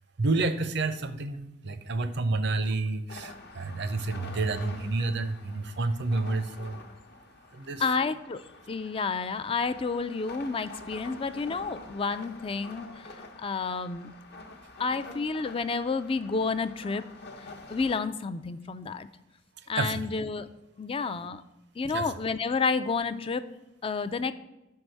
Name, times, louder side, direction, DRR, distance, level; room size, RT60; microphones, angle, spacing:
voice 1, 0.2-3.3 3.6-6.8 7.6-7.9 19.8-20.0 21.9-22.1, right 3 dB, 60° right, 11 dB, 0.6 m, -29 dB
sound 1, 3.1-18.0, left 2 dB, 55° left, 0.9 m, -47 dB
voice 2, 7.8-12.9 13.4-14.1 14.8-17.0 17.7-19.1 19.7-20.5 20.8-21.4 21.8-23.4 23.8-24.3, left 4 dB, 30° left, 12 dB, 0.4 m, -30 dB
6.1 x 4.7 x 6.5 m, 0.97 s
head